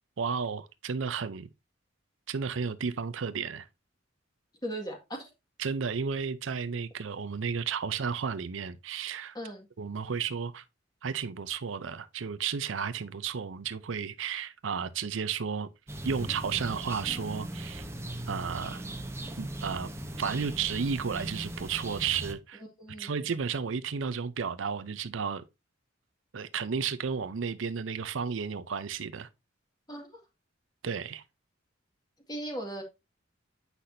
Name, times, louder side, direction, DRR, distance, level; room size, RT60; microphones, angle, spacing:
voice 1, 0.2-1.5 2.3-3.7 5.6-9.3 9.8-10.6 11.0-15.7 16.0-17.9 18.3-18.8 19.4-19.9 20.2-22.6 23.0-25.4 26.3-29.3 30.8-31.2, right 6 dB, 75° right, 0.6 m, -33 dB
voice 2, 4.6-5.3 9.3-9.7 22.6-23.3 29.9-30.2 32.3-32.8, right 1 dB, 20° left, 1.9 m, -38 dB
sound 1, 15.9-22.3, right 1 dB, 15° right, 0.8 m, -39 dB
8.2 x 5.8 x 2.6 m
head